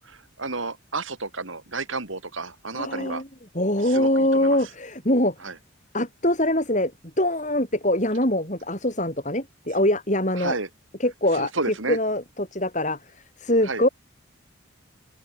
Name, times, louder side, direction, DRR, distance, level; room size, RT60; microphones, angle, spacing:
voice 1, 0.1-3.2 3.8-4.6 5.4-5.5 10.3-10.7 11.3-12.0 13.6-13.8, right 3 dB, 75° right, 3.7 m, -31 dB
voice 2, 2.7-3.3 3.5-5.3 5.9-6.9 7.2-10.6 11.0-11.5 11.9-13.0 13.4-13.9, left 1 dB, 35° left, 7.6 m, -23 dB
open air
head